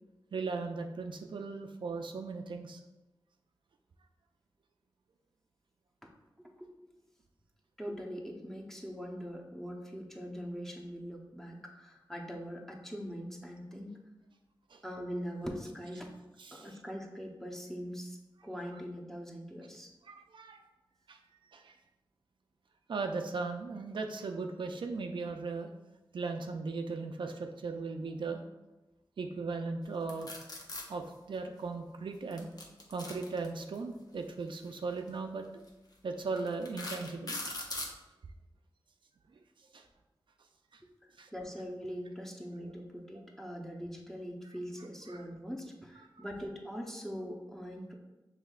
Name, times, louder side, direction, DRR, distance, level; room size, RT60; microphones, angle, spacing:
voice 1, 0.3-2.8 14.7-14.8 16.4-16.7 20.0-20.6 21.1-21.2 21.5-21.8 22.9-25.7 26.1-28.4 29.2-30.3 30.9-32.5 32.9-35.4 36.0-37.4 39.7-39.8 41.2-41.3 45.1-45.2 46.2-46.3, right 4 dB, 75° right, 5 dB, 0.4 m, -37 dB
voice 2, 6.4-6.9 7.8-13.9 14.8-16.1 16.5-18.2 18.4-19.9 41.3-47.9, equal, 5° left, -1 dB, 0.8 m, -42 dB
sound 1, 30.1-30.8 32.3-33.8 34.9-35.1 35.7-35.8 36.4-37.9, left 2 dB, 50° left, 0.7 m, -40 dB
5.5 x 3.5 x 2.4 m, 1.0 s
wide cardioid pair, 70°, 8 cm